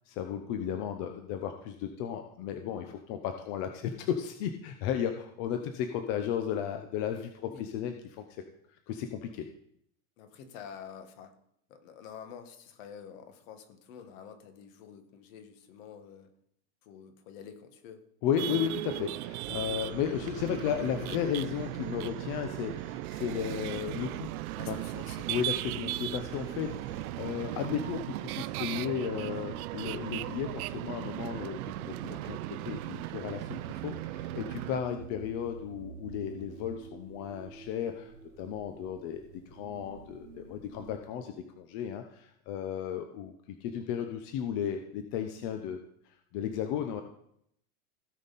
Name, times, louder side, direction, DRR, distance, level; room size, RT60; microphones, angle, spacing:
voice 1, 0.1-8.4 8.9-9.4 18.2-24.3 24.7-24.8 25.3-38.1 38.4-39.2 39.5-43.3 43.6-45.8 46.3-47.0, left 9 dB, 40° left, 6 dB, 0.8 m, -34 dB
voice 2, 10.2-11.3 11.7-16.3 16.8-18.0 24.6-25.3, left 7 dB, 55° left, 7 dB, 1.7 m, -48 dB
sound 1, 18.4-34.8, right 17 dB, 70° right, 0.5 m, -37 dB
sound 2, 19.4-27.1, right 8 dB, 45° right, 1.5 m, -48 dB
sound 3, 25.7-40.9, right 7 dB, 90° right, 1.7 m, -48 dB
16.5 x 5.6 x 4.1 m, 0.72 s
supercardioid pair, 150°, 45 cm